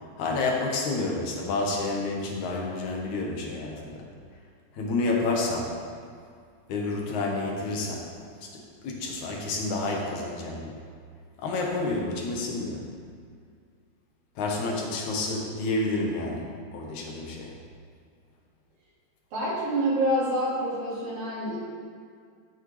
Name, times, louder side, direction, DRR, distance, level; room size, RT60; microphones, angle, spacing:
voice 1, 0.2-4.1 4.7-5.8 6.7-8.1 8.4-10.8 11.4-12.9 14.4-17.6, left 2 dB, 60° left, -1 dB, 2.4 m, -29 dB
voice 2, 19.3-21.6, right 1 dB, 75° right, -9 dB, 4.1 m, -27 dB
14.5 x 6.6 x 3.3 m, 2.2 s
omnidirectional pair, 4.2 m